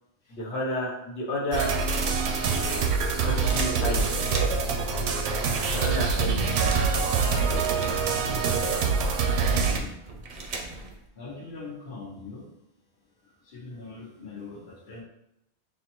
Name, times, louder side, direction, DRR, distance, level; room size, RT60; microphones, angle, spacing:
voice 1, 0.3-1.7 3.2-4.1 5.6-6.7, equal, 85° left, -4 dB, 1.2 m, -31 dB
sound 1, 1.5-9.8, right 4 dB, 80° right, 0.8 m, -25 dB
sound 2, 3.5-4.8 5.4-5.5 5.7-8.4 8.7-11.1, right 3 dB, 55° right, 0.6 m, -38 dB
voice 2, 9.7-10.1 11.1-12.5 13.4-15.0, left 3 dB, 55° left, -3 dB, 1.2 m, -42 dB
6.1 x 2.1 x 2.9 m, 0.82 s
omnidirectional pair, 1.1 m